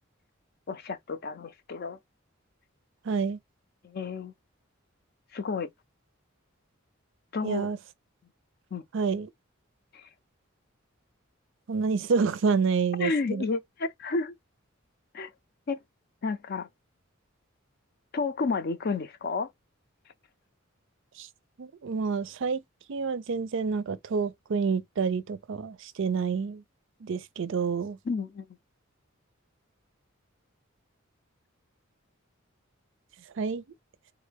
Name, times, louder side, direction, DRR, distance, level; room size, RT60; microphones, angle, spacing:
voice 1, 0.7-2.0 3.8-4.3 5.3-5.7 7.3-7.7 8.7-8.8 13.0-14.3 15.1-15.3 15.7-15.8 16.2-16.7 18.1-19.5 28.1-28.5, left 4 dB, 50° left, 0.5 m, -31 dB
voice 2, 3.0-3.4 7.4-7.8 8.9-9.3 11.7-13.4 21.2-21.3 21.6-22.6 22.9-26.6 27.0-28.0 33.4-33.6, right 5 dB, 65° right, 0.4 m, -28 dB
3.6 x 2.2 x 3.3 m
head